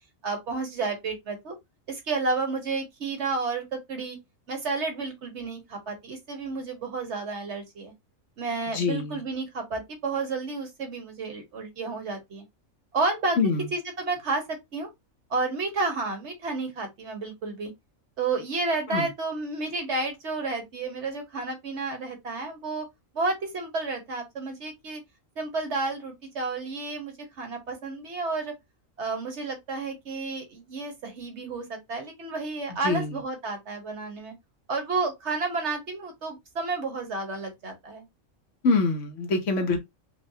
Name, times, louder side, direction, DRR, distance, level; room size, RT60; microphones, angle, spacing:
voice 1, 0.2-1.5 1.9-4.2 4.5-7.9 8.4-12.4 12.9-13.4 13.7-14.9 15.3-17.7 18.2-22.9 23.1-25.0 25.4-28.5 29.0-34.3 34.7-38.0, right 3 dB, 60° right, 1.3 m, -31 dB
voice 2, 8.7-9.2 13.4-13.7 18.9-19.1 32.8-33.1 38.6-39.8, left 3 dB, 70° left, 1.2 m, -25 dB
4.6 x 2.1 x 2.7 m
omnidirectional pair, 1.3 m